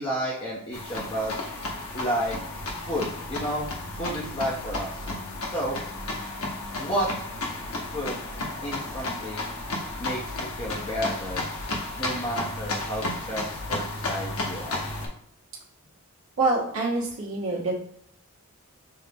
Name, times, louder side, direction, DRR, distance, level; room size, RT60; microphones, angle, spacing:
voice 1, 0.0-1.4 1.9-3.7 4.0-5.0 5.5-5.8 6.8-7.2 7.9-8.2 8.6-9.6 10.0-11.5 12.0-14.8, equal, 25° left, -5 dB, 0.6 m, -31 dB
sound 1, 0.7-15.1, left 2 dB, 75° left, 0.8 m, -33 dB
voice 2, 16.4-17.7, right 3 dB, 65° right, -7 dB, 1.2 m, -25 dB
5.6 x 2.0 x 3.4 m, 0.71 s
head